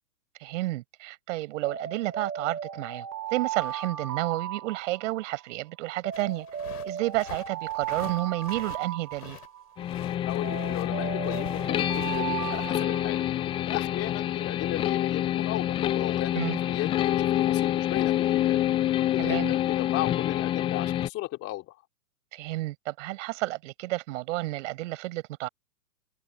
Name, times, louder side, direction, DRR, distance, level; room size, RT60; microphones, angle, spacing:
voice 1, 0.4-6.5 6.8-9.4 16.3-16.6 19.2-19.5 22.3-25.5, right 18 dB, 45° right, 5.6 m, -31 dB
Alarm, 1.6-5.4 6.0-9.7 10.4-13.6, right 9 dB, 75° right, 3.0 m, -36 dB
sound 1, 6.1-9.5 9.8-12.8, left 10 dB, 65° left, 3.5 m, -45 dB
sound 2, 9.8-21.1, left 12 dB, 10° left, 0.6 m, -27 dB
voice 2, 10.2-13.2 13.7-18.6 19.1-21.8, left 17 dB, 30° left, 3.2 m, -35 dB
open air
hypercardioid pair, 125°, 49 cm